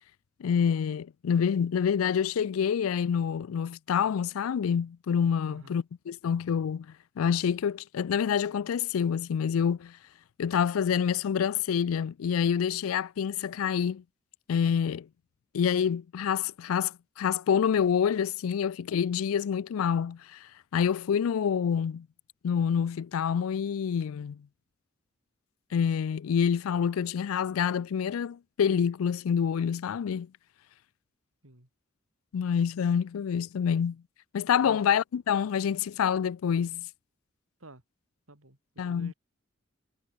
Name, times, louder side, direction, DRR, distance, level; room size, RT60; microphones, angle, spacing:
voice 1, 0.4-10.0 10.4-14.0 14.5-15.1 15.5-22.1 22.4-24.5 25.7-30.3 32.3-34.0 34.3-36.9 38.8-39.1, left 7 dB, 90° left, 0.4 m, -27 dB
voice 2, 5.4-5.8 31.4-31.7 34.6-34.8 37.6-37.8 38.3-39.1, right 2 dB, 85° right, 4.1 m, -51 dB
head